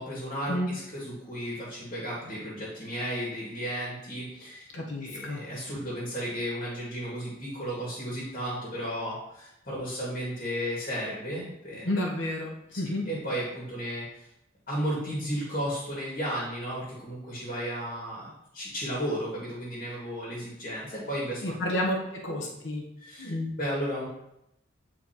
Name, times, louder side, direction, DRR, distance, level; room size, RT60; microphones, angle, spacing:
voice 1, 0.0-4.7 5.0-11.9 12.7-14.3 14.7-18.3 18.5-21.5 23.0-23.3 23.6-24.1, equal, 45° left, -5 dB, 1.8 m, -34 dB
voice 2, 4.7-5.4 11.8-13.1 21.4-22.8 23.2-23.5, left 1 dB, 70° left, 0 dB, 0.9 m, -30 dB
8.6 x 4.3 x 2.9 m, 0.83 s
head